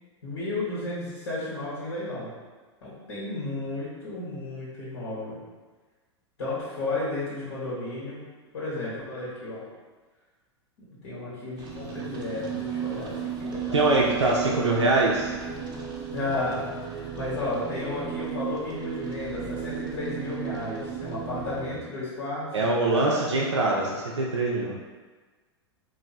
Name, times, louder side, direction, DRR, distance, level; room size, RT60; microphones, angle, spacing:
voice 1, 0.2-2.3 2.8-5.4 6.4-8.2 8.5-9.6 10.8-14.7 16.1-23.4, left 2 dB, 65° left, -8 dB, 1.3 m, -33 dB
sound 1, 11.6-21.8, right 7 dB, 30° right, 0.7 m, -35 dB
voice 2, 13.7-15.3 22.5-24.8, right 2 dB, 80° right, -3 dB, 0.5 m, -23 dB
3.0 x 2.6 x 3.9 m, 1.3 s
figure-of-eight pair, 95°, 15 cm